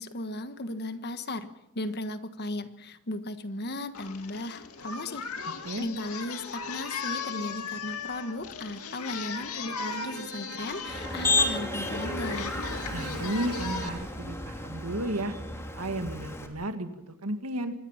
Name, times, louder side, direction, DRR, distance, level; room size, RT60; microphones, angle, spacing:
voice 1, 0.0-1.5 1.7-5.2 5.8-12.5, left 1 dB, 50° left, 10 dB, 1.4 m, -36 dB
Singing, 3.9-13.9, left 5 dB, 80° left, 2.2 m, -37 dB
Bowed string instrument, 9.9-14.2, right 4 dB, 50° right, 1.9 m, -44 dB
Motor vehicle (road), 10.9-16.5, left 2 dB, 10° left, 2.6 m, -32 dB
voice 2, 12.9-15.4 15.8-17.7, right 1 dB, 85° right, 8 dB, 2.0 m, -33 dB
25.0 x 20.5 x 5.8 m, 0.86 s
head